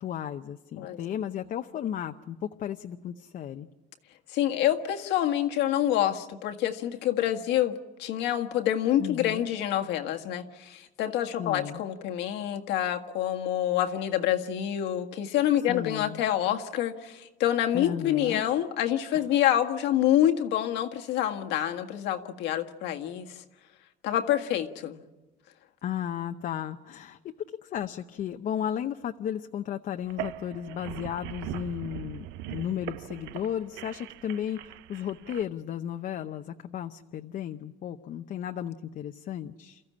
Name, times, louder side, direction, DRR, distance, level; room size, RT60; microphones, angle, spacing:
voice 1, 0.0-3.7 9.0-9.4 11.4-11.8 15.7-16.2 17.7-18.4 25.8-27.3 27.6-39.8, left 10 dB, 50° left, 6 dB, 0.8 m, -34 dB
voice 2, 4.3-7.7 8.0-23.3 24.0-25.0, left 11 dB, 85° left, 5 dB, 1.7 m, -27 dB
sound 1, 30.0-35.4, right 14 dB, 90° right, 0.7 m, -40 dB
29.0 x 14.5 x 8.6 m, 1.2 s
cardioid pair, 125°, 18 cm